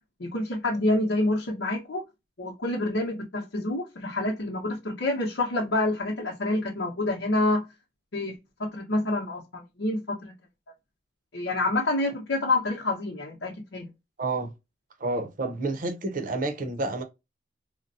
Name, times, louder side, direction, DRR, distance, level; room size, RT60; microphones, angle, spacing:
voice 1, 0.2-2.0 2.4-7.6 8.1-8.3 8.6-10.3 11.3-13.9, left 2 dB, 80° left, 0.8 m, -27 dB
voice 2, 14.2-14.5 15.0-17.0, right 2 dB, 45° right, 0.7 m, -29 dB
3.8 x 2.1 x 2.6 m
head